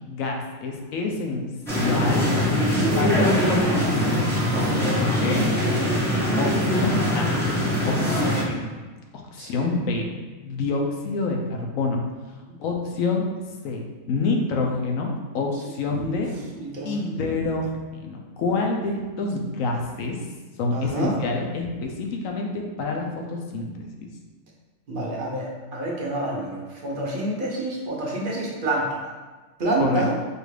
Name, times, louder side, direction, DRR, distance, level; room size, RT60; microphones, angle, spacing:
voice 1, 0.0-1.4 1.7-2.2 3.0-4.3 5.0-5.5 6.4-7.4 7.9-8.7 9.1-10.1 10.4-12.0 12.6-13.3 13.6-13.8 14.1-16.3 16.8-20.2 20.6-24.1 29.8-30.0, left 3 dB, 75° left, 1 dB, 1.0 m, -27 dB
sound 1, 1.7-8.4, equal, 5° left, 0.4 m, -22 dB
voice 2, 2.6-3.0 5.5-5.9 9.4-9.7 16.0-16.2 16.6-17.1 20.7-21.1 24.9-29.1 29.6-30.1, right 2 dB, 50° right, -3 dB, 0.8 m, -28 dB
5.0 x 2.4 x 3.2 m, 1.3 s
omnidirectional pair, 1.5 m